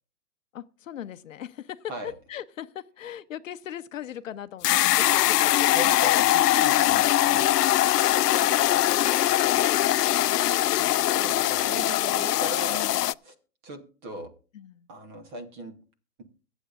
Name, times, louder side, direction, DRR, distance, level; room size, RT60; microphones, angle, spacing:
voice 1, 0.5-7.0 7.8-9.0 11.7-12.2 12.7-13.0 14.5-14.9, left 10 dB, 55° left, 0.8 m, -40 dB
sound 1, 4.6-13.1, left 14 dB, 85° left, 0.6 m, -22 dB
voice 2, 5.7-7.5 11.0-12.9 13.2-13.3 13.6-14.3 14.9-15.7, equal, 15° right, 0.9 m, -38 dB
23.0 x 8.1 x 2.5 m
hypercardioid pair, 165°, 46 cm